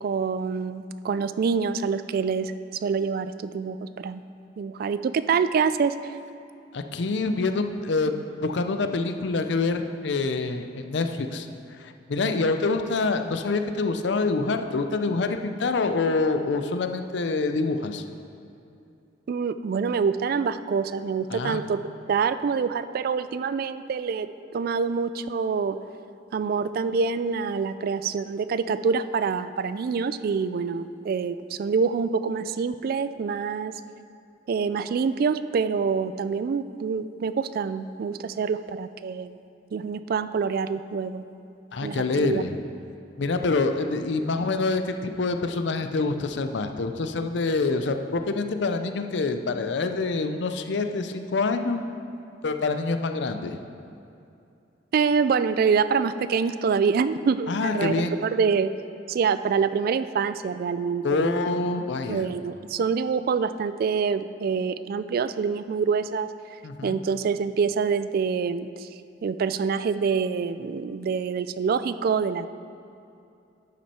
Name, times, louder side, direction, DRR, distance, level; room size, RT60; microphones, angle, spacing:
voice 1, 0.0-4.2 4.6-6.1 19.3-21.8 22.1-24.3 24.5-25.8 26.3-33.7 34.5-39.4 39.7-41.2 41.8-42.4 54.9-57.9 58.2-58.7 59.1-61.4 62.1-66.3 66.8-68.9 69.2-72.5, right 5 dB, 55° right, 13 dB, 0.3 m, -26 dB
voice 2, 6.7-11.5 11.8-18.0 21.3-21.6 41.7-42.6 43.2-51.8 52.4-53.6 57.5-58.2 61.0-62.3 66.6-67.0, left 3 dB, 65° left, 7 dB, 0.5 m, -26 dB
11.0 x 6.2 x 4.3 m, 2.6 s
head